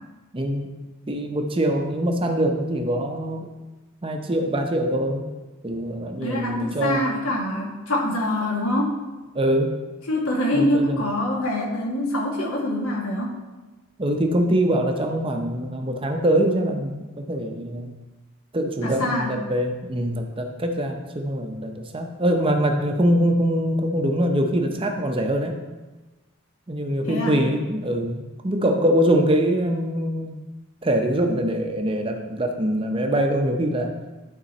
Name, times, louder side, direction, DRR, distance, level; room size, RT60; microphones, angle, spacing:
voice 1, 0.3-0.7 1.1-3.5 4.0-5.2 5.6-7.0 9.3-9.7 10.5-11.0 14.0-17.9 18.5-25.5 26.7-30.4 30.8-33.9, right 1 dB, 25° right, 4 dB, 0.6 m, -23 dB
voice 2, 6.2-9.0 10.1-13.3 18.8-19.3 27.0-27.4, left 1 dB, 80° left, -1 dB, 1.6 m, -25 dB
11.0 x 3.8 x 4.2 m, 1.2 s
head